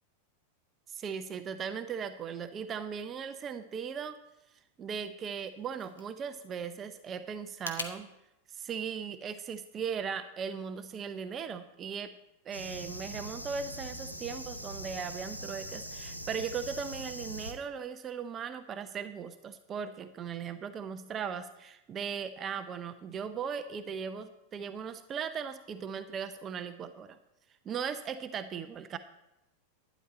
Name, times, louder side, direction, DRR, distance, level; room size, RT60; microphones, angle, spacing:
voice 1, 0.9-4.2 4.8-8.1 8.5-12.1 12.4-27.2 27.6-29.0, right 7 dB, 25° right, 10 dB, 0.7 m, -38 dB
sound 1, 5.3-8.0, left 4 dB, 70° left, 1.2 m, -44 dB
sound 2, 12.5-17.5, equal, 90° right, 1.2 m, -42 dB
12.0 x 10.0 x 4.2 m, 0.90 s
figure-of-eight pair, 90°, 0 cm